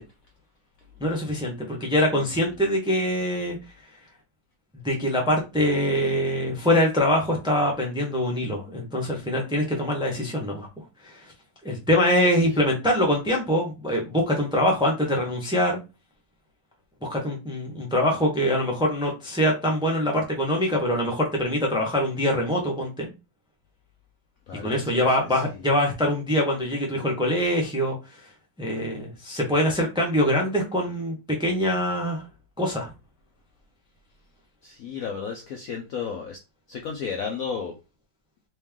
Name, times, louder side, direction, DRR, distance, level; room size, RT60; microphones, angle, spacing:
voice 1, 1.0-3.6 4.8-10.7 11.0-11.3 11.6-15.8 17.0-23.1 24.5-28.0 28.6-32.2 32.6-32.9, equal, 5° right, 0 dB, 0.7 m, -24 dB
voice 2, 24.5-25.6 34.6-36.4 36.7-37.8, left 6 dB, 70° left, 2 dB, 0.9 m, -33 dB
3.1 x 3.1 x 3.6 m, 0.26 s
omnidirectional pair, 2.0 m